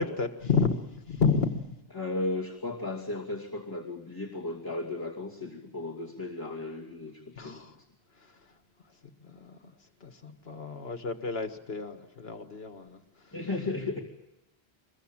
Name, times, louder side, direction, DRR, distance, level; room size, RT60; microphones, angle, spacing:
voice 1, 0.0-1.8 7.4-7.7 8.2-8.4 9.2-9.6 10.0-13.3, left 5 dB, 75° left, 6 dB, 1.8 m, -31 dB
voice 2, 1.9-7.9 13.3-14.0, left 2 dB, 20° left, -3 dB, 2.6 m, -35 dB
25.5 x 22.0 x 7.4 m, 0.95 s
omnidirectional pair, 1.1 m